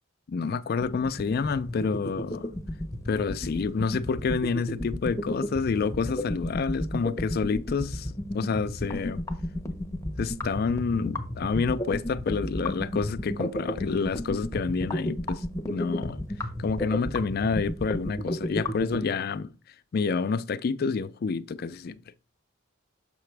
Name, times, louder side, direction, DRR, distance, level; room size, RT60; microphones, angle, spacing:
voice 1, 0.3-2.5 3.1-9.2 10.2-16.2 16.6-19.5 19.9-22.0, left 5 dB, 50° left, 0.4 m, -28 dB
sound 1, 0.8-19.0, left 1 dB, 15° left, 0.7 m, -32 dB
6.9 x 5.7 x 3.3 m
head